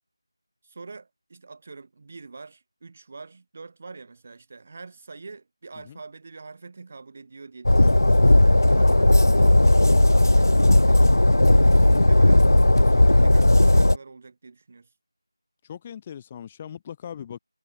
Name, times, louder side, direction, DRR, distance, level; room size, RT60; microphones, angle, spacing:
voice 1, 0.6-9.8 10.3-14.9, right 4 dB, 15° right, 4.6 m, -45 dB
Train, 7.6-14.0, left 1 dB, 45° left, 0.7 m, -16 dB
voice 2, 15.6-17.4, left 9 dB, 5° left, 2.4 m, -39 dB
figure-of-eight pair, 180°, 2 cm